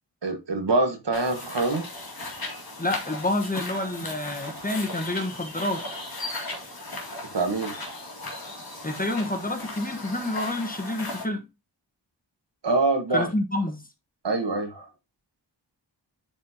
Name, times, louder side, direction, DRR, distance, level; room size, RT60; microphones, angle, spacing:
voice 1, 0.2-1.8 7.3-7.7 12.6-13.3 14.2-14.9, right 2 dB, 70° right, 1.6 m, -24 dB
sound 1, 1.1-11.2, left 2 dB, 55° left, 2.2 m, -37 dB
voice 2, 2.8-5.8 8.8-11.4 13.1-13.8, left 1 dB, 20° left, 1.3 m, -28 dB
10.0 x 4.3 x 2.9 m
wide cardioid pair, 75°, 43 cm